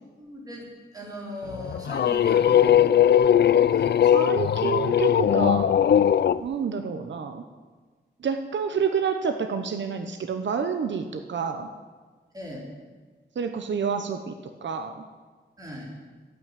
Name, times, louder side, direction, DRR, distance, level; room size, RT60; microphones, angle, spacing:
voice 1, 0.2-3.1 3.6-4.3 12.3-12.6 15.6-15.9, equal, 20° right, -3 dB, 3.8 m, -39 dB
sound 1, 1.5-6.4, left 9 dB, 65° left, 0.4 m, -20 dB
voice 2, 4.1-5.7 6.4-7.4 8.2-11.7 13.4-14.3 14.6-15.0, right 6 dB, 85° right, 7 dB, 0.9 m, -28 dB
12.5 x 8.4 x 9.0 m, 1.4 s
wide cardioid pair, 165°, 18 cm